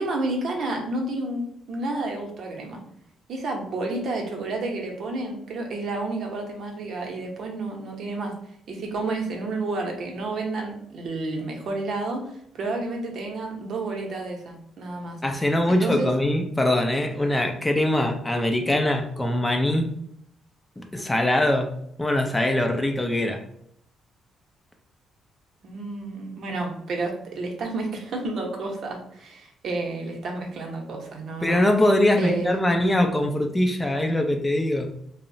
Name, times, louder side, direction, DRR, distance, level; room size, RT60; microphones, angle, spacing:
voice 1, 0.0-2.8 3.3-8.3 8.7-12.3 12.5-15.2 15.7-16.1 25.6-31.6 32.2-32.6, right 2 dB, 65° right, 1 dB, 0.7 m, -30 dB
voice 2, 15.2-19.9 20.8-21.7 22.0-23.4 31.4-34.9, left 1 dB, 15° left, 3 dB, 0.4 m, -22 dB
2.8 x 2.0 x 2.6 m, 0.72 s
cardioid pair, 90°, 0 cm